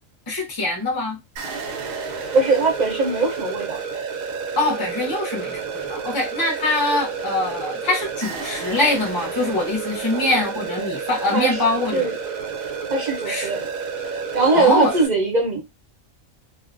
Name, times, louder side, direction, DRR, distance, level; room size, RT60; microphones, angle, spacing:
voice 1, 0.3-1.2 4.6-12.1 13.3-13.5 14.5-14.9, left 2 dB, 25° left, 0.5 m, -23 dB
sound 1, 1.4-15.1, right 5 dB, 85° right, 1.1 m, -30 dB
voice 2, 2.3-3.8 10.1-10.2 11.3-11.6 11.9-12.2 12.9-13.7 14.3-15.6, right 3 dB, 40° right, 0.7 m, -20 dB
2.5 x 2.0 x 2.5 m
omnidirectional pair, 1.4 m